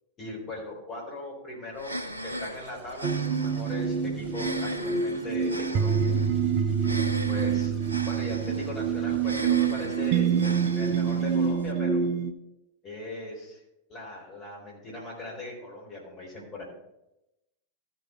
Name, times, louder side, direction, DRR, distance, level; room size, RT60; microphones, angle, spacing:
voice 1, 0.2-6.2 7.3-12.1 12.8-13.6 13.9-16.6, left 2 dB, 30° left, -2 dB, 3.9 m, -39 dB
sound 1, 1.7-11.7, equal, 85° right, 0.6 m, -38 dB
sound 2, 2.3-11.5, equal, 5° right, 4.0 m, -53 dB
sound 3, 3.0-12.3, right 7 dB, 45° right, 0.6 m, -26 dB
14.0 x 6.1 x 4.3 m, 0.89 s
figure-of-eight pair, 90°, 0 cm